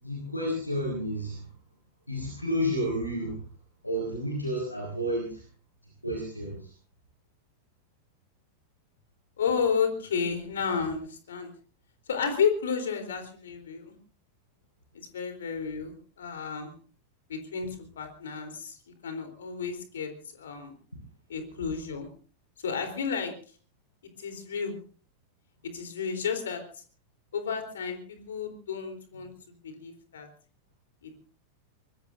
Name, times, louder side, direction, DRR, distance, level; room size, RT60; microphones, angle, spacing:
voice 1, 0.0-1.5 2.1-3.4 3.8-5.4 6.0-6.7, equal, 85° left, -1 dB, 5.2 m, -31 dB
voice 2, 9.4-11.5 12.1-13.9 14.9-16.7 17.3-20.7 21.3-22.1 22.6-23.3 24.2-24.8 25.6-26.8 27.3-30.3 31.0-31.2, left 6 dB, 65° left, 6 dB, 3.8 m, -32 dB
24.0 x 21.5 x 2.7 m, 0.40 s
figure-of-eight pair, 90°, 0 cm